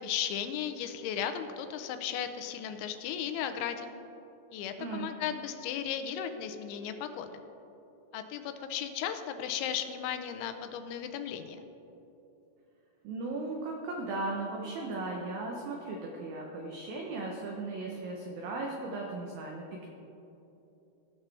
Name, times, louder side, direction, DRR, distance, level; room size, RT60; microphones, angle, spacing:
voice 1, 0.0-3.9 4.5-7.4 8.1-11.6, left 9 dB, 90° left, 8 dB, 3.0 m, -35 dB
voice 2, 4.8-5.1 13.0-19.9, right 2 dB, 85° right, 0 dB, 2.0 m, -37 dB
16.0 x 6.0 x 3.3 m, 2.9 s
omnidirectional pair, 5.2 m